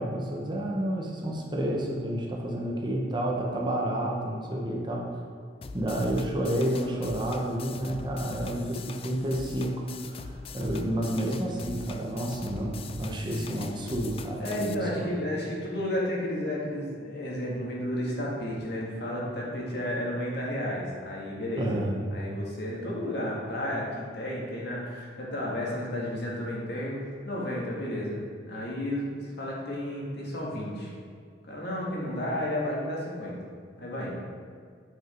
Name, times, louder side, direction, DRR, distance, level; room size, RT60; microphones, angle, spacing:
voice 1, 0.0-5.2 5.7-15.1 21.6-22.0, right 1 dB, 25° right, -1 dB, 1.0 m, -30 dB
sound 1, 5.6-14.7, left 4 dB, 30° left, 0.3 m, -42 dB
voice 2, 14.4-21.8 22.1-27.0 27.2-28.2 28.5-30.9 31.5-33.4 33.8-34.1, left 1 dB, 60° left, -4 dB, 2.0 m, -32 dB
8.3 x 6.3 x 4.5 m, 2.1 s
head